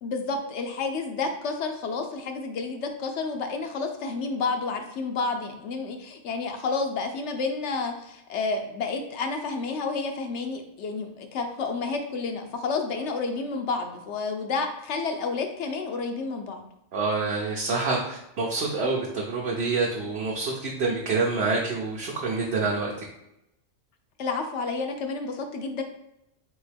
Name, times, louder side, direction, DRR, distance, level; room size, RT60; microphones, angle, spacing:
voice 1, 0.0-16.6 24.2-25.8, left 4 dB, 70° left, 5 dB, 0.9 m, -30 dB
voice 2, 16.9-22.9, right 3 dB, 60° right, -3 dB, 0.9 m, -27 dB
3.6 x 3.6 x 3.4 m, 0.86 s
omnidirectional pair, 1.3 m